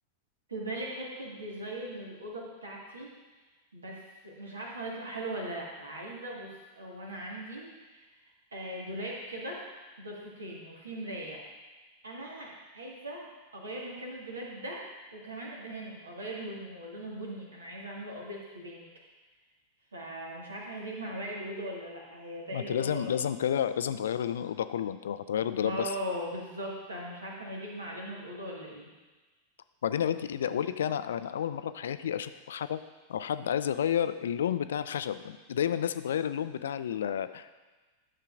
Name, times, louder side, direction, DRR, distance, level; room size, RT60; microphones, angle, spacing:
voice 1, 0.5-3.1 3.7-9.7 10.0-11.4 12.0-14.8 15.1-18.8 19.9-23.2 25.6-28.9, right 1 dB, 75° right, -2 dB, 1.7 m, -39 dB
voice 2, 22.5-25.9 29.8-32.8 33.1-37.6, left 9 dB, 65° left, 12 dB, 0.3 m, -31 dB
11.0 x 6.6 x 2.5 m, 1.2 s
figure-of-eight pair, 90°, 0 cm